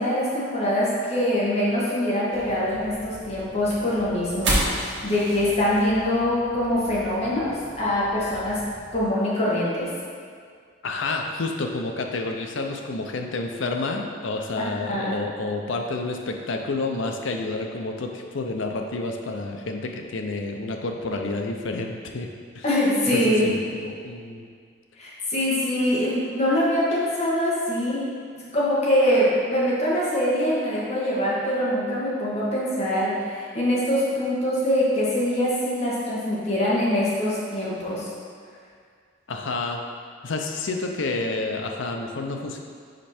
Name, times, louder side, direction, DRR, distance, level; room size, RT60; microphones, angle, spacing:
voice 1, 0.0-8.6 8.9-9.9 14.6-15.1 22.6-23.5 25.0-28.1 28.3-38.1, left 1 dB, 35° left, -7 dB, 1.5 m, -24 dB
sound 1, 2.3-9.1, right 1 dB, 70° right, 1.4 m, -33 dB
voice 2, 10.8-22.3 22.5-22.6 23.1-24.5 39.3-39.8 40.2-42.6, left 3 dB, 80° left, 3 dB, 0.6 m, -29 dB
5.2 x 4.4 x 4.3 m, 2.1 s
head